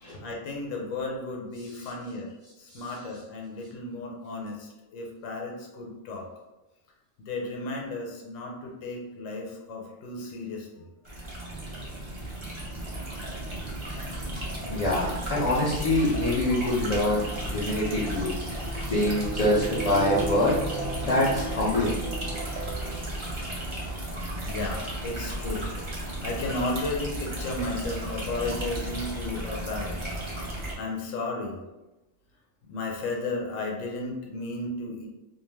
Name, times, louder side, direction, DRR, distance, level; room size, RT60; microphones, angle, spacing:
voice 1, 0.2-6.3 7.3-10.9 12.9-13.0 17.6-18.1 18.5-18.9 23.9-30.0 30.8-31.6 32.7-35.1, left 2 dB, 90° left, -1 dB, 1.0 m, -34 dB
sound 1, 11.1-30.7, right 1 dB, 35° right, 0.5 m, -34 dB
sound 2, 11.5-24.1, right 3 dB, 75° right, 1.0 m, -40 dB
voice 2, 14.7-18.3 18.9-20.5 21.0-21.9, left 1 dB, 55° left, -6 dB, 0.4 m, -25 dB
2.5 x 2.2 x 3.2 m, 1.0 s
omnidirectional pair, 1.3 m